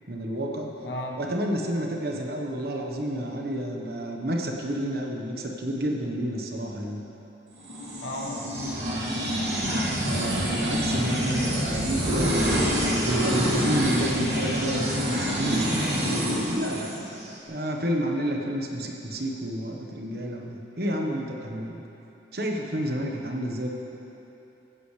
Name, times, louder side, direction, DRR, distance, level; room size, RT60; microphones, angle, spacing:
voice 1, 0.1-0.7 1.2-7.0 10.0-12.5 13.0-15.7 16.1-17.0 17.4-21.8 22.3-23.7, equal, 55° right, 1 dB, 1.2 m, -30 dB
voice 2, 0.8-1.2 8.0-8.7, left 1 dB, 80° left, -1 dB, 1.4 m, -34 dB
sound 1, 7.6-17.3, equal, 70° right, 2.9 m, -27 dB
15.0 x 11.0 x 3.3 m, 3.0 s
head